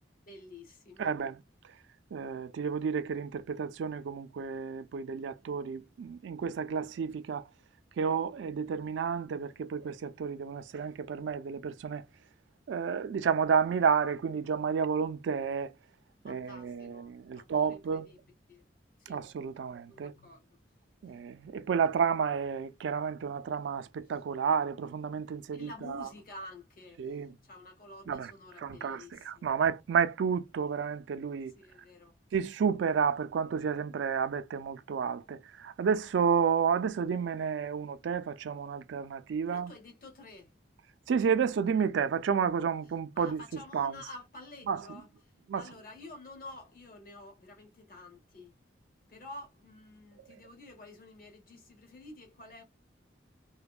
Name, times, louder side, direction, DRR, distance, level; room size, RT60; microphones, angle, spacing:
voice 1, 0.3-1.2 16.2-18.2 18.5-18.6 19.0-19.2 19.9-20.5 25.5-29.6 31.5-32.1 39.5-40.5 43.1-45.1 45.5-48.5 49.1-52.6, left 2 dB, 50° left, 1.0 m, -50 dB
voice 2, 1.0-1.3 2.1-7.4 8.0-12.0 12.7-15.7 16.2-18.1 19.1-20.1 21.0-26.0 27.0-27.3 28.1-28.3 28.6-31.5 32.3-39.7 41.1-43.4 43.7-43.9 44.7-44.8 45.5-45.6, right 6 dB, 75° right, 0.3 m, -31 dB
2.5 x 2.1 x 2.2 m
head